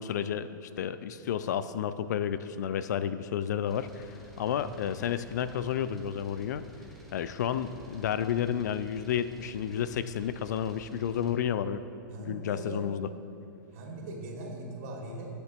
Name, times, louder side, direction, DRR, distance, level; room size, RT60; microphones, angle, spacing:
voice 1, 0.0-6.6 7.1-11.8 12.2-13.1, left 9 dB, 55° left, 13 dB, 0.4 m, -31 dB
sound 1, 3.7-11.3, right 1 dB, ahead, 1.6 m, -51 dB
voice 2, 12.1-12.8 13.7-15.3, right 2 dB, 45° right, -1 dB, 2.6 m, -40 dB
18.5 x 6.6 x 3.1 m, 2.7 s
figure-of-eight pair, 105°, 11 cm